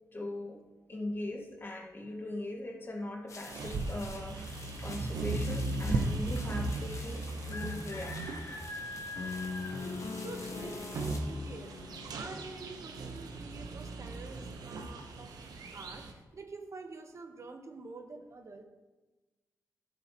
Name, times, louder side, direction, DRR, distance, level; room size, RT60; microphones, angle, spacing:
voice 1, 0.1-0.6 0.9-8.5 9.2-9.4 9.9-10.0 10.6-10.7, left 2 dB, 35° left, 1 dB, 1.7 m, -40 dB
sound 1, 3.3-11.2, left 3 dB, 50° left, 1.2 m, -46 dB
sound 2, 3.5-16.1, right 2 dB, 80° right, 1.0 m, -37 dB
sound 3, 9.1-13.3, left 4 dB, 80° left, 1.6 m, -42 dB
voice 2, 10.1-11.7 12.1-15.3 15.7-18.6, right 3 dB, 50° right, 5 dB, 1.1 m, -47 dB
12.0 x 7.7 x 3.1 m, 1.2 s
cardioid pair, 75°, 7 cm